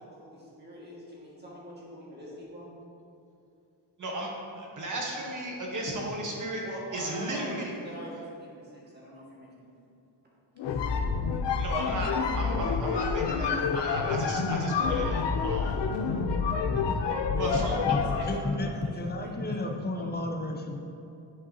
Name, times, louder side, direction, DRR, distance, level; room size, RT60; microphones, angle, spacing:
voice 1, 0.0-2.7 6.6-9.9 10.7-10.8 17.3-17.7 18.0-19.5 19.9-20.0, equal, 25° right, -6 dB, 1.6 m, -44 dB
voice 2, 4.0-6.6 6.9-7.7 11.6-15.8 17.4-18.0, right 1 dB, 45° right, -2 dB, 1.2 m, -34 dB
sound 1, 10.6-18.4, left 5 dB, 75° left, 0.6 m, -28 dB
voice 3, 18.3-20.8, left 2 dB, 25° left, 2 dB, 0.5 m, -32 dB
10.5 x 5.4 x 2.8 m, 2.6 s
wide cardioid pair, 180°, 43 cm